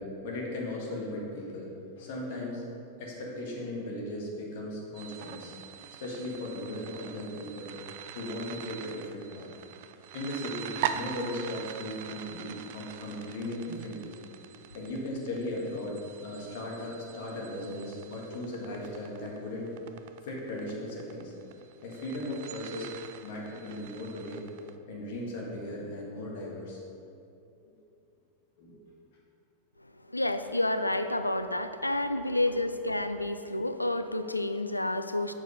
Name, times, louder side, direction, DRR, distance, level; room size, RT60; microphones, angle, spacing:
voice 1, 0.0-1.7 2.0-2.6 3.0-5.5 6.0-7.7 8.1-9.5 10.1-14.2 14.7-19.7 20.2-21.3 21.8-22.9 23.2-24.4 24.9-26.8 28.6-28.8 32.1-32.5, left 1 dB, 50° left, -2 dB, 1.6 m, -37 dB
sound 1, 4.9-24.7, right 9 dB, 50° right, 0.4 m, -42 dB
voice 2, 29.8-35.3, left 1 dB, 85° left, 9 dB, 0.3 m, -30 dB
6.7 x 4.8 x 5.2 m, 2.6 s
figure-of-eight pair, 90°, 0 cm